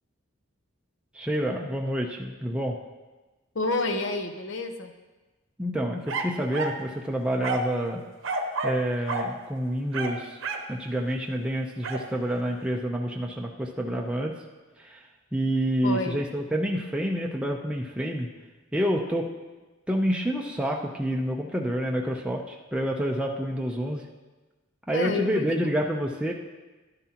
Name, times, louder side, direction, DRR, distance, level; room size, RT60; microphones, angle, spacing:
voice 1, 1.1-2.8 5.6-8.0 8.6-10.4 10.7-14.3 14.8-15.0 15.3-18.3 18.7-19.3 19.9-24.0 24.9-26.3, equal, 5° right, 0 dB, 0.6 m, -28 dB
voice 2, 3.5-4.9 15.8-16.2 24.9-25.4, left 3 dB, 65° left, 6 dB, 0.9 m, -29 dB
sound 1, 6.1-6.8 7.4-7.8 8.2-8.8 9.1-9.3 9.9-10.7 11.8-12.1, right 2 dB, 65° right, 0.9 m, -30 dB
12.0 x 10.5 x 2.9 m, 1.2 s
head